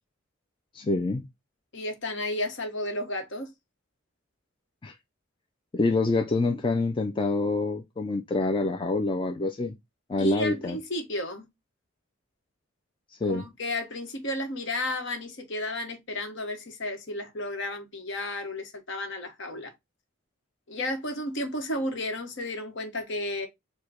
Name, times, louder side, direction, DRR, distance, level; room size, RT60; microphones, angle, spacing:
voice 1, 0.7-1.3 4.8-4.9 5.7-9.7 10.1-10.8 13.1-13.5, left 2 dB, 25° left, 0.4 m, -26 dB
voice 2, 1.7-3.5 10.2-11.5 13.3-19.7 20.7-23.5, left 1 dB, 60° left, 1.1 m, -33 dB
4.8 x 2.2 x 4.2 m
head